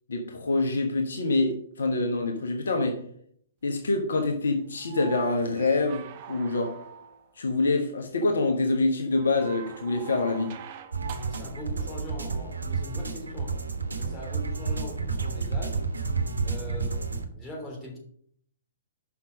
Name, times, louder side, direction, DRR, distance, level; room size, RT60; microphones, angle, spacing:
voice 1, 0.1-3.0 3.6-6.8 7.4-10.6, left 3 dB, 65° left, 3 dB, 1.1 m, -26 dB
sound 1, 4.8-7.3 9.1-11.6 13.3-13.4, right 7 dB, 40° right, 0.8 m, -43 dB
sound 2, 10.9-17.3, right 4 dB, 75° right, 1.3 m, -30 dB
voice 2, 11.2-13.6 13.9-15.9 16.4-17.1 17.3-18.0, left 1 dB, 10° left, -2 dB, 3.4 m, -41 dB
6.0 x 5.9 x 6.3 m, 0.64 s
figure-of-eight pair, 120°, 0 cm